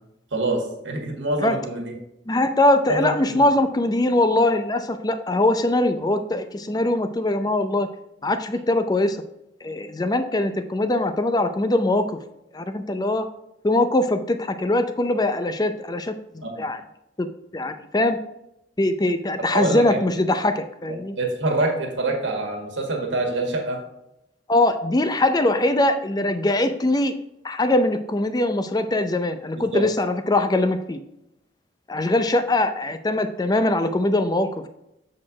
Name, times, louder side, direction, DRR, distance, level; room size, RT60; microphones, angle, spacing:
voice 1, 0.3-1.9 2.9-3.4 16.4-16.7 19.5-20.0 21.2-23.8 29.6-29.8, right 2 dB, 80° right, 1 dB, 1.7 m, -25 dB
voice 2, 2.3-7.9 8.2-9.2 9.6-12.2 12.5-13.3 13.6-16.8 17.2-17.3 17.5-18.2 18.8-21.2 24.5-27.1 27.4-31.0 31.9-34.7, left 2 dB, 20° left, 9 dB, 0.5 m, -22 dB
7.6 x 4.3 x 4.9 m, 0.84 s
head